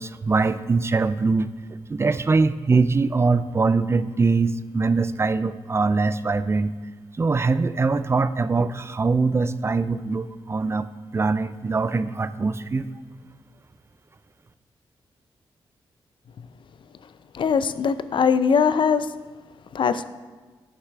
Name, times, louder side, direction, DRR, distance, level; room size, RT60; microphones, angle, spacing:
voice 1, 0.0-1.5 1.9-6.8 7.2-10.9 11.1-12.9, right 4 dB, 25° right, 15 dB, 0.3 m, -22 dB
voice 2, 17.3-19.1 19.7-20.0, left 6 dB, 55° left, 13 dB, 0.4 m, -21 dB
9.6 x 5.7 x 3.3 m, 1.4 s
supercardioid pair, 50°, 10 cm